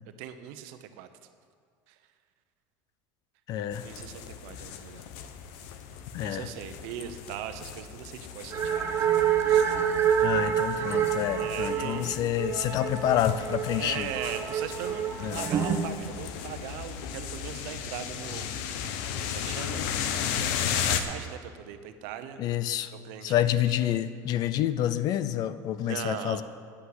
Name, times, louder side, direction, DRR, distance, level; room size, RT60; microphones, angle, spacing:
voice 1, 0.2-1.1 1.9-2.0 3.8-5.0 6.2-9.1 9.5-9.7 11.3-12.5 13.7-15.0 15.3-19.0 19.3-19.9 20.3-22.4 22.9-23.4 23.9-24.1 25.8-26.4, right 10 dB, 70° right, 9 dB, 0.9 m, -40 dB
voice 2, 3.5-3.8 6.1-6.5 10.2-14.1 15.2-15.4 22.4-22.9 23.2-26.4, left 11 dB, 45° left, 14 dB, 0.5 m, -28 dB
sound 1, 3.7-21.0, left 8 dB, 75° left, 0.9 m, -36 dB
sound 2, 8.5-15.8, right 9 dB, 30° right, 1.0 m, -27 dB
9.9 x 8.4 x 7.9 m, 2.1 s
cardioid pair, 140°, 9 cm